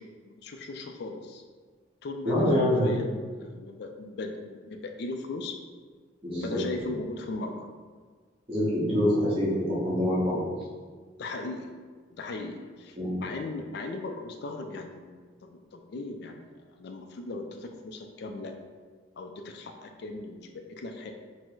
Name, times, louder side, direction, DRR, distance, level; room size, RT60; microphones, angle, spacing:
voice 1, 0.0-1.4 2.0-5.5 6.4-7.7 11.2-11.7 12.2-15.1 15.4-16.5 16.8-18.5 19.2-21.1, left 2 dB, 60° left, 5 dB, 0.4 m, -38 dB
voice 2, 2.2-2.9 6.2-6.6 8.5-10.4 13.0-13.2, left 1 dB, 30° right, -7 dB, 1.2 m, -25 dB
4.3 x 2.1 x 4.4 m, 1.5 s
head